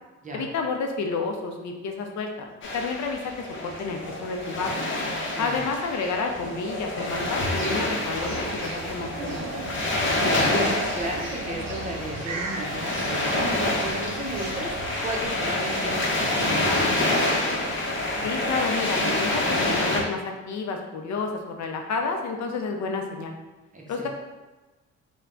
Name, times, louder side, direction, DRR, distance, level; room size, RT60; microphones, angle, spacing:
voice 1, 0.3-2.5 2.7-4.7 5.4-9.5 18.2-20.2 20.5-21.3 21.6-23.3 23.9-24.1, left 4 dB, 65° left, 3 dB, 0.6 m, -30 dB
sound 1, 2.6-20.0, left 1 dB, 40° left, 0.9 m, -27 dB
sound 2, 7.0-15.3, right 3 dB, 60° right, 0.6 m, -38 dB
voice 2, 10.2-17.3 23.7-24.1, right 1 dB, 25° right, -1 dB, 0.7 m, -34 dB
3.3 x 2.2 x 3.7 m, 1.2 s
cardioid pair, 90°, 30 cm